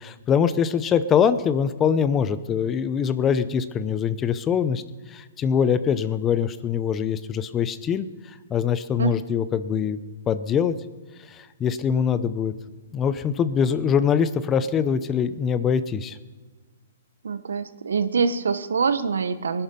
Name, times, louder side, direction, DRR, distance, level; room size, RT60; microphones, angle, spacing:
voice 1, 0.0-4.8 5.1-10.0 10.3-10.8 11.3-12.5 12.9-16.2, left 7 dB, 20° left, 14 dB, 0.7 m, -23 dB
voice 2, 17.2-19.6, right 5 dB, 85° right, 12 dB, 1.0 m, -24 dB
20.0 x 11.5 x 5.3 m, 1.3 s
hypercardioid pair, 140°, 0 cm